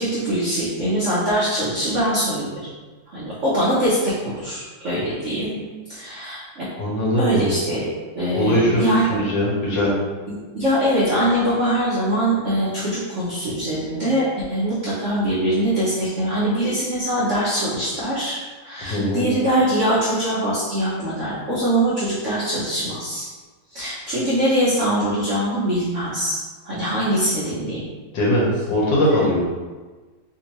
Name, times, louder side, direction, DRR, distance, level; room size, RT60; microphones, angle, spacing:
voice 1, 0.0-2.7 3.1-5.6 5.9-6.6 7.1-7.8 8.1-9.2 10.3-23.3 23.7-26.4 26.6-27.9, right 1 dB, 90° right, -8 dB, 0.6 m, -23 dB
voice 2, 6.8-7.5 8.3-9.9 18.8-19.2 28.1-29.4, equal, 65° left, -6 dB, 1.6 m, -20 dB
3.5 x 2.6 x 2.9 m, 1.3 s
omnidirectional pair, 2.2 m